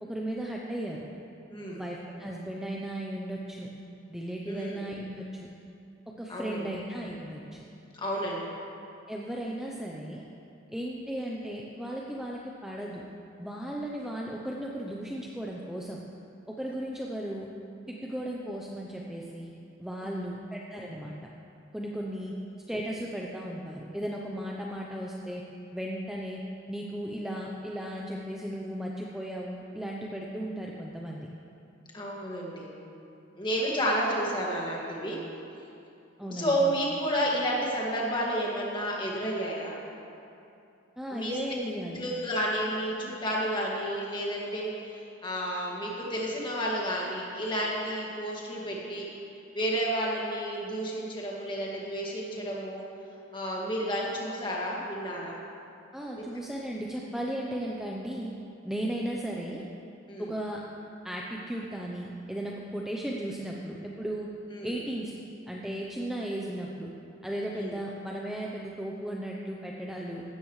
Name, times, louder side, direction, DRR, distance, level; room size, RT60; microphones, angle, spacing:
voice 1, 0.0-1.0 1.7-3.7 4.1-5.5 6.2-7.6 9.1-10.2 10.7-13.0 13.4-16.0 16.5-17.5 17.9-19.5 19.8-21.1 21.7-22.3 22.7-25.4 25.7-26.4 26.7-31.3 36.2-36.7 41.0-42.0 55.9-58.3 58.6-59.6 60.2-60.6 61.0-64.3 64.6-65.2 65.5-66.9 67.2-70.2, right 1 dB, ahead, -3 dB, 0.7 m, -36 dB
voice 2, 1.5-1.8 4.5-4.8 6.3-6.6 7.9-8.5 20.0-20.2 31.9-32.7 33.4-35.2 36.3-39.7 41.1-41.4 41.9-49.1 49.5-52.8 53.3-55.4 56.1-56.2 60.1-60.3 64.5-64.7 67.5-67.7, equal, 25° left, -4 dB, 2.0 m, -31 dB
16.0 x 13.0 x 3.2 m, 2.7 s
head